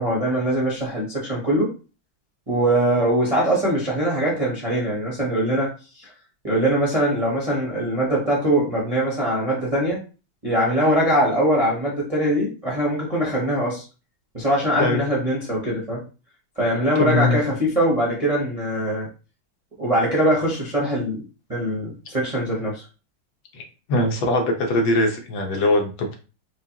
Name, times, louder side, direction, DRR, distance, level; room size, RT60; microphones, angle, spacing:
voice 1, 0.0-1.7 2.5-6.1 6.4-10.0 10.4-13.8 14.3-16.0 16.6-19.1 19.8-21.2 21.5-22.9, right 1 dB, 40° right, -5 dB, 0.5 m, -22 dB
voice 2, 17.0-17.4 23.5-23.6 23.9-26.1, left 2 dB, 80° left, 2 dB, 1.7 m, -21 dB
4.8 x 2.3 x 2.8 m, 0.34 s
omnidirectional pair, 2.1 m